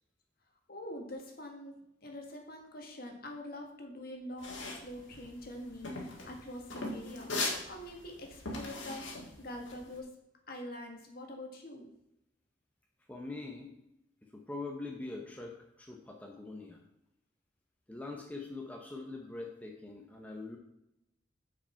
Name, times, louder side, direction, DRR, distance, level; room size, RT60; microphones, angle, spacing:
voice 1, 0.7-7.3 7.6-10.1 10.5-11.9, left 1 dB, 50° left, 2 dB, 1.6 m, -45 dB
sound 1, 4.4-10.0, left 2 dB, 90° left, 1.9 m, -39 dB
voice 2, 13.1-13.7 14.3-16.8 17.9-20.6, left 2 dB, 10° left, 0 dB, 0.7 m, -43 dB
9.3 x 5.0 x 4.5 m, 0.83 s
head